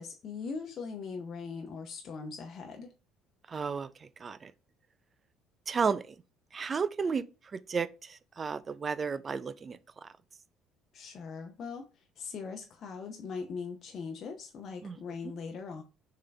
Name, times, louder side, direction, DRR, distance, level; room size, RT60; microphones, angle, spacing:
voice 1, 0.0-2.9 10.9-11.9 12.2-15.8, left 5 dB, 50° left, 0.7 m, -40 dB
voice 2, 3.5-4.5 5.7-6.2 6.5-7.2 7.5-10.1 14.8-15.0, right 5 dB, 35° right, 0.4 m, -33 dB
3.7 x 3.3 x 3.3 m
supercardioid pair, 75°, 0 cm